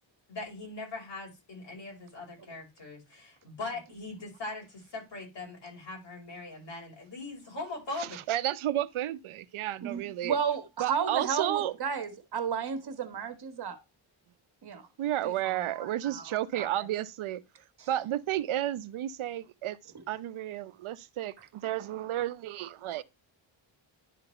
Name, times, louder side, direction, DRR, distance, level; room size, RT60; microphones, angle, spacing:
voice 1, 0.3-8.2, left 3 dB, 60° left, 5.5 m, -41 dB
voice 2, 8.0-10.4 10.8-11.7 15.0-17.4 17.9-19.8 20.1-23.0, right 13 dB, 80° right, 0.7 m, -32 dB
voice 3, 9.8-13.8 14.6-14.9 15.2-15.3 15.6-16.8 17.8-17.9, right 7 dB, 50° right, 1.5 m, -33 dB
11.0 x 3.9 x 4.3 m
wide cardioid pair, 125°, 48 cm